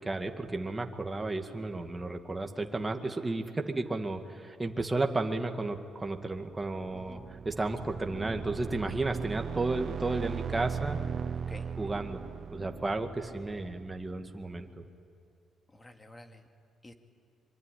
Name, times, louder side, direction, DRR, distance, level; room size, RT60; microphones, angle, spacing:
voice 1, 0.0-11.0 11.8-12.2 12.5-14.8, right 2 dB, 20° right, 5 dB, 1.9 m, -33 dB
sound 1, 6.7-14.2, right 7 dB, 50° right, 0.6 m, -38 dB
voice 2, 6.9-7.3 11.3-11.7 15.7-16.5 16.8-16.9, left 1 dB, 20° left, 5 dB, 2.4 m, -50 dB
25.0 x 23.5 x 10.0 m, 2.4 s
cardioid pair, 90°, 0 cm